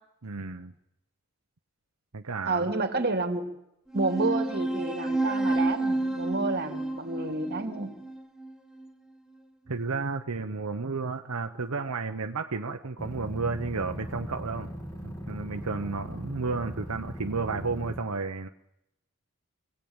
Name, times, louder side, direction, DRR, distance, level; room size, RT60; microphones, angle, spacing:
voice 1, 0.2-0.7 2.1-2.7 9.7-14.7 15.0-18.5, right 4 dB, 80° right, 5 dB, 1.0 m, -32 dB
voice 2, 2.4-3.5 3.9-7.9, right 3 dB, 45° right, 4 dB, 2.9 m, -30 dB
sound 1, 3.9-8.9, right 2 dB, 5° right, 1.2 m, -30 dB
sound 2, 13.0-18.0, equal, 15° left, 2.8 m, -39 dB
26.0 x 18.0 x 8.9 m, 0.86 s
head